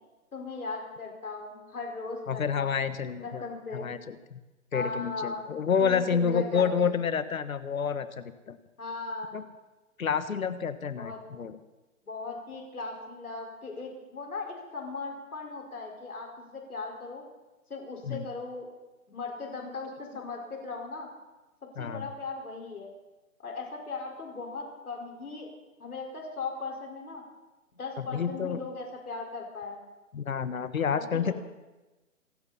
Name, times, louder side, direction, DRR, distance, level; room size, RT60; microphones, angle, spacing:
voice 1, 0.3-2.9 3.2-3.9 4.7-5.4 5.8-6.9 8.8-9.3 11.0-11.2 12.1-17.2 17.7-18.7 19.1-21.1 21.6-22.9 23.4-25.5 25.8-27.2 27.8-29.9 30.9-31.3, left 3 dB, 85° left, 1 dB, 5.2 m, -38 dB
voice 2, 2.3-3.4 3.7-4.4 4.7-8.6 9.3-9.4 10.0-11.6 18.1-18.2 21.8-22.1 28.0-28.6 30.1-31.3, left 6 dB, 70° left, 12 dB, 1.5 m, -29 dB
27.5 x 11.5 x 4.3 m, 1.1 s
hypercardioid pair, 175°, 43 cm